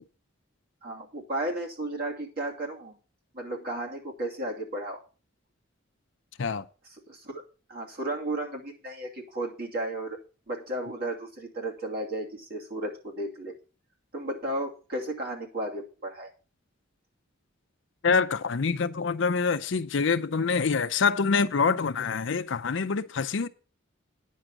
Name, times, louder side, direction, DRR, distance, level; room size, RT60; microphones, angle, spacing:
voice 1, 0.8-3.0 3.3-5.0 6.8-7.3 7.7-10.2 10.5-13.5 14.1-16.3, right 1 dB, 50° right, 2.6 m, -34 dB
voice 2, 18.0-23.5, left 5 dB, 65° left, 0.5 m, -26 dB
9.9 x 6.4 x 5.9 m
head